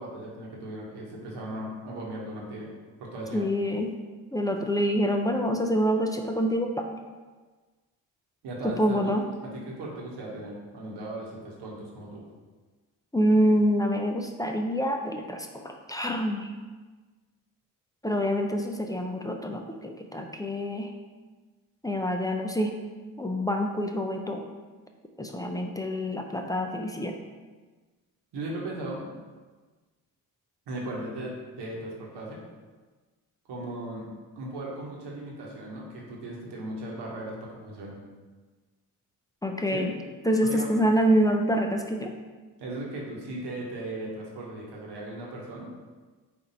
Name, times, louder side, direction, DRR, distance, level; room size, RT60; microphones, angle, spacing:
voice 1, 0.0-2.7 3.0-3.4 8.4-12.2 28.3-29.1 30.7-32.4 33.5-34.1 34.4-38.0 39.7-39.9 40.4-40.7 42.6-45.7, right 1 dB, 65° right, -3 dB, 1.2 m, -37 dB
voice 2, 3.3-3.9 4.3-6.9 8.6-9.2 13.1-16.5 18.0-20.9 21.8-22.8 23.2-24.4 25.2-27.2 39.4-39.9 40.3-42.1, equal, 10° left, 3 dB, 0.4 m, -26 dB
4.4 x 2.6 x 4.0 m, 1.3 s
hypercardioid pair, 45°, 44 cm